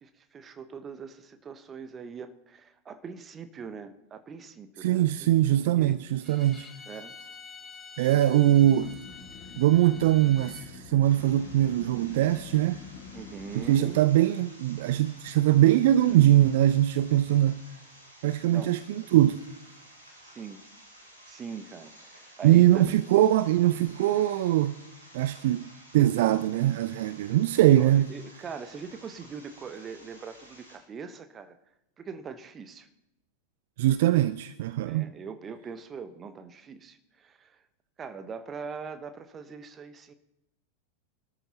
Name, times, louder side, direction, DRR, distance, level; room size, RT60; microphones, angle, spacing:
voice 1, 0.0-6.0 6.8-7.1 8.1-8.6 13.1-14.0 18.5-18.8 20.2-20.6 21.3-23.0 27.7-31.6 32.0-32.9 34.8-37.6 38.0-40.1, right 5 dB, 25° right, 1.1 m, -42 dB
voice 2, 4.8-6.7 8.0-8.9 9.6-12.8 13.6-17.6 18.2-19.4 22.4-24.8 25.1-28.1 33.8-35.1, right 13 dB, 55° right, 0.4 m, -22 dB
Bowed string instrument, 6.2-10.7, left 4 dB, 15° left, 2.3 m, -47 dB
sound 1, 8.5-14.0, left 5 dB, 40° left, 2.6 m, -46 dB
sound 2, 11.0-30.8, right 1 dB, 80° right, 5.5 m, -53 dB
24.5 x 13.0 x 2.9 m
figure-of-eight pair, 90°, 0 cm